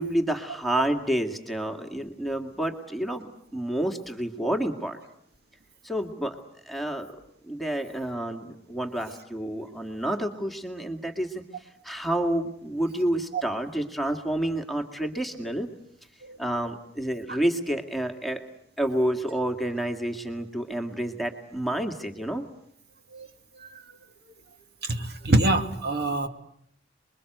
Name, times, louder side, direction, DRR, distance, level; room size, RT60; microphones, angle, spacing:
voice 1, 0.0-5.0 5.8-6.4 6.6-15.7 16.4-18.4 18.8-22.4, right 1 dB, ahead, 4 dB, 2.1 m, -29 dB
voice 2, 24.9-26.3, right 2 dB, 55° right, 6 dB, 2.3 m, -24 dB
29.5 x 22.5 x 8.0 m, 0.72 s
head